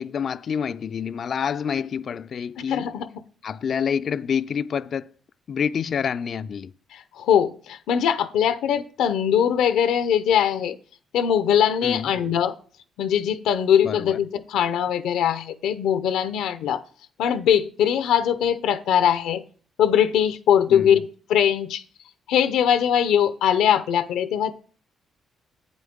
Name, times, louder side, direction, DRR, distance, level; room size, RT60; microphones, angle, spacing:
voice 1, 0.0-2.9 3.4-5.1 5.5-6.7 11.8-12.1 13.8-14.2 20.7-21.0, left 7 dB, 55° left, 0.4 m, -27 dB
voice 2, 2.6-3.1 6.9-10.8 11.1-12.5 13.0-16.8 17.2-19.4 19.8-21.8 22.3-24.5, left 9 dB, 90° left, 0.7 m, -21 dB
8.2 x 8.0 x 3.6 m
cardioid pair, 85°, 0 cm